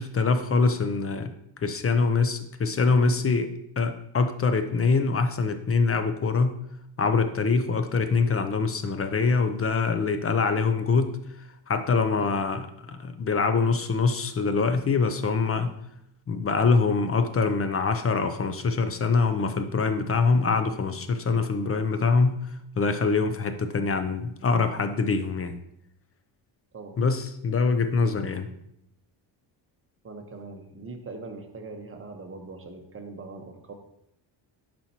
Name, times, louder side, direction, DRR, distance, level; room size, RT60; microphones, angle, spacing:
voice 1, 0.0-1.3 1.6-6.6 7.0-11.2 11.7-12.6 12.9-15.7 16.3-22.4 22.8-25.6 27.0-28.5, left 4 dB, 30° left, 9 dB, 0.6 m, -24 dB
voice 2, 30.0-33.7, right 3 dB, 25° right, 3 dB, 1.1 m, -41 dB
11.5 x 4.3 x 2.9 m, 0.76 s
cardioid pair, 105°, 47 cm